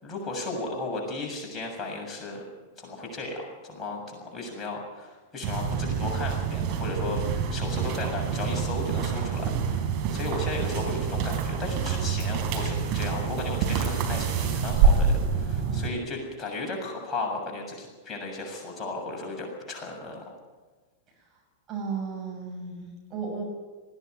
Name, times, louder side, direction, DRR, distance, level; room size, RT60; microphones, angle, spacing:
voice 1, 0.0-2.4 2.8-20.3, left 2 dB, 20° left, 0 dB, 7.1 m, -35 dB
sound 1, 5.4-15.9, right 6 dB, 45° right, 4.0 m, -27 dB
voice 2, 21.1-21.4 21.7-23.4, right 5 dB, 30° right, 1 dB, 6.8 m, -35 dB
20.0 x 16.0 x 9.6 m, 1.3 s
figure-of-eight pair, 95°, 0 cm